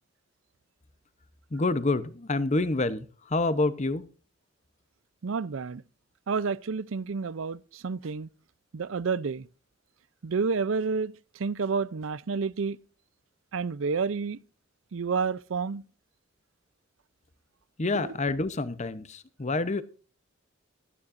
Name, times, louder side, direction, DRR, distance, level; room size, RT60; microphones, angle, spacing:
voice 1, 1.5-4.0 17.8-19.8, left 2 dB, 35° left, 0.8 m, -27 dB
voice 2, 5.2-5.8 6.3-8.3 8.7-9.5 10.2-11.1 11.4-12.8 13.5-14.4 14.9-15.8 17.9-18.1, right 5 dB, 75° right, 0.5 m, -29 dB
17.0 x 12.5 x 2.5 m
head